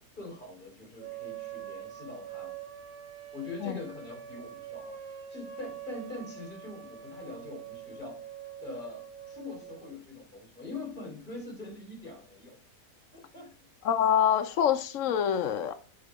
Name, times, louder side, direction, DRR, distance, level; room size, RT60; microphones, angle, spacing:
voice 1, 0.0-2.6 3.3-8.2 8.6-12.6 13.1-13.5, left 3 dB, 30° left, 3.0 m, -43 dB
sound 1, 1.0-10.0, right 9 dB, 70° right, 1.7 m, -44 dB
voice 2, 13.8-15.7, left 9 dB, 60° left, 0.9 m, -25 dB
8.6 x 4.5 x 4.6 m
omnidirectional pair, 1.8 m